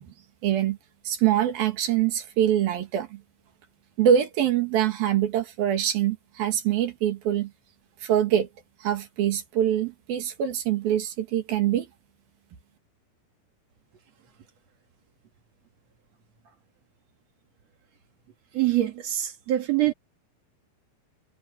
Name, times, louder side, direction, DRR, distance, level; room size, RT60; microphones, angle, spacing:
voice 1, 0.4-0.8 1.1-3.2 4.0-7.5 8.0-8.5 8.8-11.9, right 10 dB, 75° right, 3.9 m, -24 dB
voice 2, 18.5-19.9, right 14 dB, 50° right, 2.6 m, -24 dB
omnidirectional pair, 4.4 m